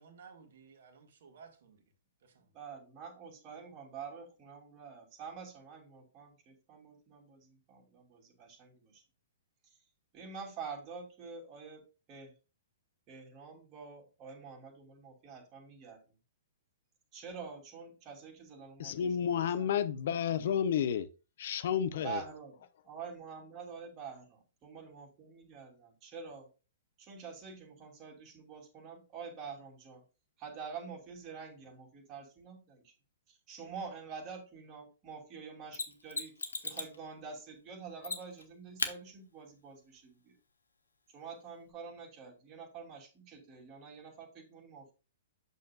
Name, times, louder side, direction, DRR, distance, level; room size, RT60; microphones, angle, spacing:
voice 1, 0.0-1.8 2.2-2.5, right 5 dB, 60° right, 1.7 m, -56 dB
voice 2, 2.5-9.0 9.6-9.8 10.1-12.3 13.1-16.1 17.1-19.7 22.0-22.6 22.8-24.4 24.6-26.5 27.0-30.0 30.4-32.9 33.3-36.3 36.6-40.4 41.1-44.9, right 5 dB, 30° right, 2.8 m, -47 dB
voice 3, 18.8-21.0 21.4-22.2, left 8 dB, 55° left, 0.6 m, -31 dB
Mechanisms, 35.7-37.0 38.0-38.4 38.8-38.9 41.7-41.8, left 4 dB, 80° left, 0.9 m, -36 dB
8.1 x 6.5 x 2.4 m
figure-of-eight pair, 115°, 0 cm